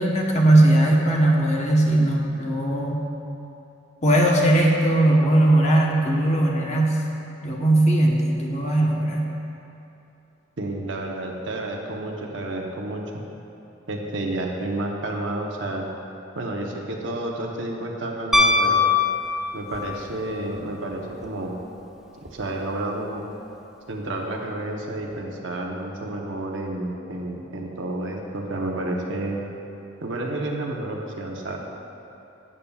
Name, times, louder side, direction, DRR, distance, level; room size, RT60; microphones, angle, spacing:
voice 1, 0.0-3.0 4.0-7.0 7.4-9.3, right 1 dB, 35° left, -1 dB, 1.0 m, -19 dB
voice 2, 10.6-13.2 13.9-15.8 16.3-18.9 19.5-21.6 22.2-23.2 23.9-29.4 30.0-31.6, right 1 dB, 70° right, 0 dB, 0.9 m, -30 dB
Piano, 18.3-19.9 22.3-22.4, left 3 dB, 5° right, 0.3 m, -20 dB
12.0 x 8.6 x 2.4 m, 2.8 s
head